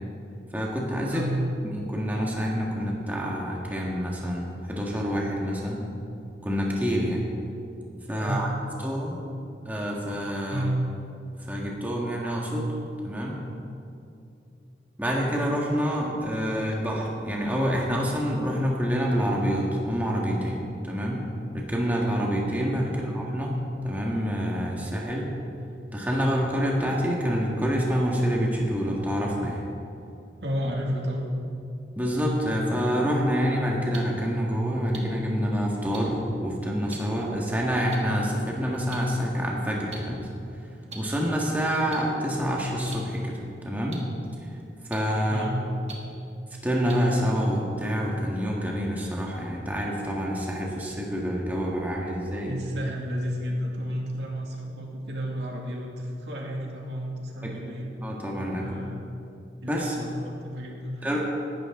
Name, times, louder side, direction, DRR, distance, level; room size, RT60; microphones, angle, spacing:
voice 1, 0.5-1.3 1.6-5.8 6.4-7.2 8.1-8.5 8.8-9.2 9.6-10.6 11.4-12.7 13.0-13.4 15.0-21.2 21.5-23.5 23.8-25.3 25.9-29.6 31.9-40.3 40.9-44.0 44.9-45.4 46.6-52.6 57.4-57.5 58.0-58.7 59.7-60.0 61.0-61.2, equal, 10° right, -3 dB, 1.7 m, -27 dB
voice 2, 1.1-1.4 8.2-8.5 10.5-10.8 30.4-31.4 45.3-45.6 52.5-57.9 58.6-59.0 59.6-61.2, equal, 80° right, -1 dB, 2.3 m, -31 dB
sound 1, 33.9-34.0 34.9-35.0 35.9-36.0 36.9-37.0 37.9-38.0 38.9-39.0 39.9-40.0 40.9-41.0 41.9-42.0 42.9-43.0 43.9-44.0 44.9-45.0 45.9-46.0 46.9-47.0, right 4 dB, 35° right, 1.8 m, -39 dB
19.0 x 12.0 x 3.8 m, 2.6 s
head